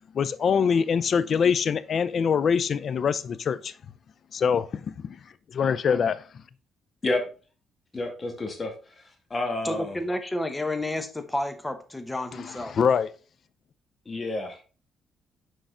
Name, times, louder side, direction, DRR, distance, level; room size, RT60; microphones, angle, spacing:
voice 1, 0.1-3.7 4.3-5.2 5.5-6.2 12.3-13.1, left 6 dB, 55° left, 0.5 m, -24 dB
voice 2, 7.9-9.0 9.3-10.0 14.1-14.6, left 2 dB, 30° left, 2.0 m, -30 dB
voice 3, 9.6-12.8, left 1 dB, 15° left, 1.1 m, -31 dB
6.4 x 4.7 x 3.8 m
cardioid pair, 90°, 0 cm